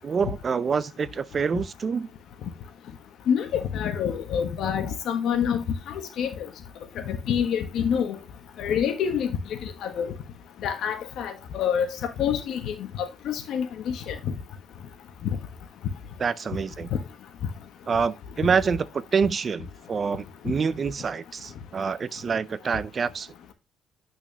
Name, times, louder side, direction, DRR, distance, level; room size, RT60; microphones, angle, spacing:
voice 1, 0.0-2.1 16.2-16.9 17.9-23.3, right 5 dB, 30° right, 0.4 m, -26 dB
voice 2, 3.3-6.3 7.1-8.2 8.6-9.3 9.8-10.1 10.6-14.3 15.2-15.4 16.9-17.0, left 8 dB, 65° left, 1.1 m, -27 dB
8.8 x 6.0 x 2.8 m
cardioid pair, 170°, 0 cm